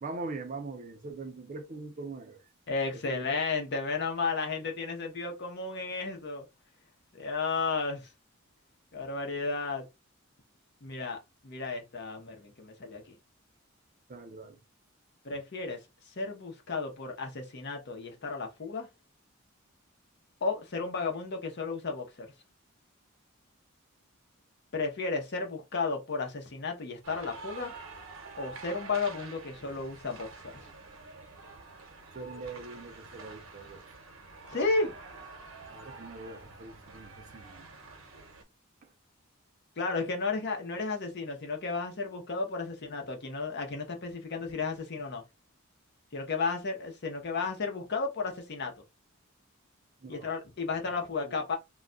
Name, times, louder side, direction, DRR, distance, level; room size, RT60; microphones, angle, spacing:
voice 1, 0.0-2.4 3.1-3.4 14.1-14.6 32.1-33.8 35.7-37.7 50.0-50.3 50.9-51.4, right 3 dB, 40° right, 0.5 m, -42 dB
voice 2, 2.7-6.5 7.1-8.1 8.9-9.9 10.8-11.2 11.4-13.2 15.2-15.8 16.1-18.9 20.4-22.3 24.7-27.7 28.4-30.5 34.5-34.9 39.8-45.2 46.1-48.7 50.1-51.6, left 4 dB, 55° left, 0.7 m, -33 dB
sound 1, 27.0-38.4, right 3 dB, 85° right, 0.8 m, -48 dB
2.3 x 2.2 x 3.7 m
head